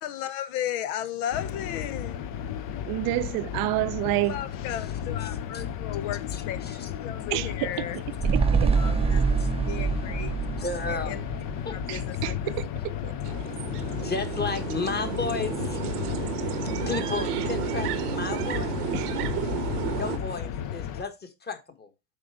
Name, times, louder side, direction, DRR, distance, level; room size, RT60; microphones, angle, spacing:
voice 1, 0.0-2.2 4.3-8.0 8.7-9.2 9.6-10.3 10.9-11.2 11.7-12.5, left 11 dB, 70° left, 1.0 m, -35 dB
sound 1, 1.3-21.0, left 9 dB, 45° left, 0.8 m, -34 dB
voice 2, 2.9-4.3 7.3-7.7 8.3-8.7 11.9-12.7 13.0-13.2 18.9-19.6, right 19 dB, 50° right, 0.6 m, -29 dB
sound 2, 8.2-12.7 13.0-13.1, right 5 dB, 15° right, 0.7 m, -26 dB
voice 3, 10.6-11.1 11.7-11.8 13.4-13.5 13.9-18.8 19.9-21.9, left 4 dB, 20° left, 1.4 m, -33 dB
sound 3, 13.3-20.2, right 7 dB, 85° right, 1.2 m, -32 dB
8.0 x 4.1 x 4.7 m
hypercardioid pair, 95°, 46 cm